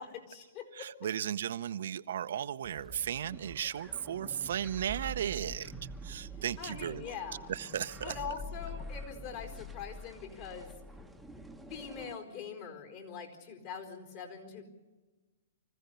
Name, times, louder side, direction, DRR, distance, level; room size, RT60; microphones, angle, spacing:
voice 1, 0.0-0.9 6.6-7.5 8.0-10.7 11.7-14.6, left 6 dB, 45° left, 4 dB, 4.4 m, -43 dB
voice 2, 0.7-5.7 6.0-7.1 7.5-8.1, right 9 dB, 65° right, 11 dB, 0.7 m, -35 dB
sound 1, 2.6-12.2, right 1 dB, ahead, 1.1 m, -46 dB
24.5 x 15.0 x 7.0 m, 1.2 s
hypercardioid pair, 140°, 0 cm